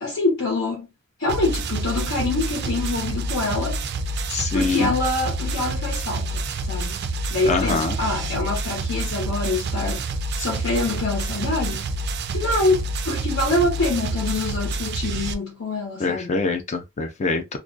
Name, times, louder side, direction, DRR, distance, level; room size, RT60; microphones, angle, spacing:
voice 1, 0.0-0.9 1.2-3.8 4.5-7.0 7.3-10.0 10.3-11.9 12.3-16.4, left 2 dB, 70° left, 0.8 m, -25 dB
sound 1, 1.3-15.3, right 2 dB, 55° right, 0.3 m, -28 dB
voice 2, 4.3-4.9 7.5-8.0 16.0-17.6, left 4 dB, 35° left, 0.4 m, -24 dB
2.3 x 2.2 x 2.5 m
head